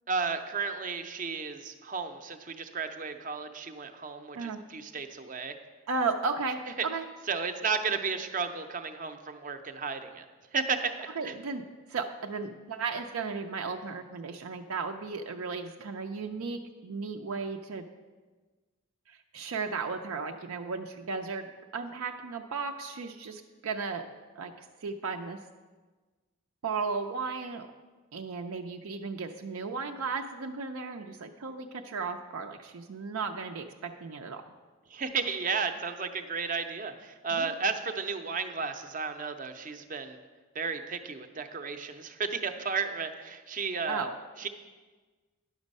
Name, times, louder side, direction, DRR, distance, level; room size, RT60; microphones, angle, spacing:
voice 1, 0.1-5.6 7.3-10.2 10.5-11.3 34.9-40.2 40.5-44.1 44.4-44.5, right 5 dB, 40° right, 7 dB, 0.6 m, -33 dB
voice 2, 5.9-7.1 11.2-11.6 11.9-17.9 19.1-24.1 24.4-25.4 26.6-27.7 28.1-34.4 37.3-37.5 43.9-44.2, right 4 dB, 85° right, 4 dB, 0.5 m, -35 dB
10.5 x 6.2 x 5.3 m, 1.3 s
head